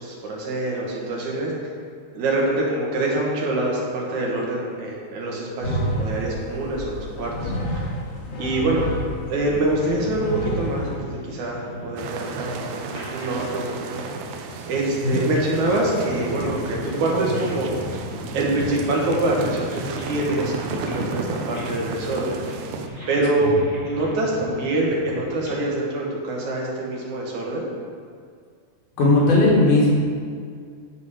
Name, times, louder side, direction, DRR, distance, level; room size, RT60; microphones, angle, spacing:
voice 1, 0.0-1.5 2.1-7.8 8.4-8.8 9.3-14.1 14.7-17.7 18.3-22.3 23.1-23.6 23.9-27.7, right 2 dB, 70° right, -2 dB, 2.8 m, -25 dB
texture big rubberball, 5.6-11.0, equal, 60° left, 2.5 m, -29 dB
sound 1, 9.3-25.5, left 1 dB, 15° left, 1.3 m, -35 dB
sound 2, 12.0-22.9, right 5 dB, 90° right, 2.2 m, -34 dB
voice 2, 29.0-29.9, left 2 dB, 85° left, -5 dB, 3.4 m, -16 dB
10.0 x 5.2 x 4.9 m, 2.1 s
omnidirectional pair, 3.5 m